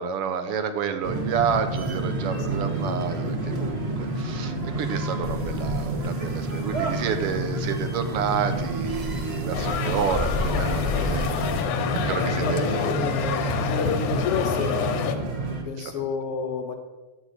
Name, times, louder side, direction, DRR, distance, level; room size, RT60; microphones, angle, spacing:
voice 1, 0.0-11.6 12.0-13.0 15.8-16.0, right 6 dB, 65° right, 8 dB, 1.5 m, -29 dB
sound 1, 1.0-15.6, right 2 dB, 30° right, 1.2 m, -30 dB
sound 2, 5.2-11.6, left 3 dB, 5° right, 1.4 m, -34 dB
sound 3, 9.5-15.2, left 7 dB, 80° left, 2.4 m, -27 dB
voice 2, 12.4-16.7, left 5 dB, 60° left, 5 dB, 1.8 m, -30 dB
10.0 x 8.5 x 6.6 m, 1.2 s
omnidirectional pair, 3.4 m